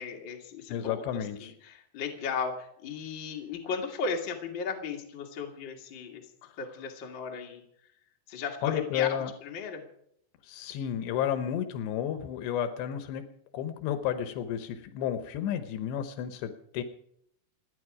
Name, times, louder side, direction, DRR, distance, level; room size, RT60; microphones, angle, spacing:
voice 1, 0.0-6.3 6.6-7.6 8.3-9.8 12.8-12.9, left 5 dB, 40° left, 1 dB, 1.8 m, -36 dB
voice 2, 0.7-1.5 6.4-6.5 8.6-9.3 10.5-13.2 13.5-16.8, left 10 dB, 85° left, 9 dB, 3.2 m, -32 dB
28.5 x 9.8 x 4.9 m, 0.72 s
omnidirectional pair, 4.9 m